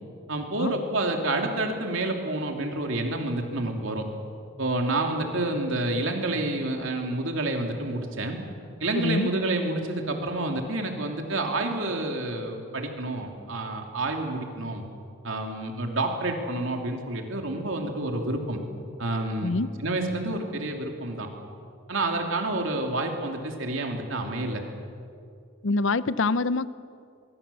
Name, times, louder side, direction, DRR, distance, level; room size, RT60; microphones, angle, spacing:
voice 1, 0.3-4.1 4.6-8.4 8.8-14.8 15.2-18.6 19.0-19.5 19.8-21.3 21.9-24.6, right 2 dB, 65° right, 3 dB, 3.0 m, -29 dB
voice 2, 8.9-9.3 19.4-19.7 25.6-26.7, left 3 dB, 60° left, 15 dB, 0.7 m, -25 dB
23.5 x 23.5 x 7.1 m, 2.4 s
head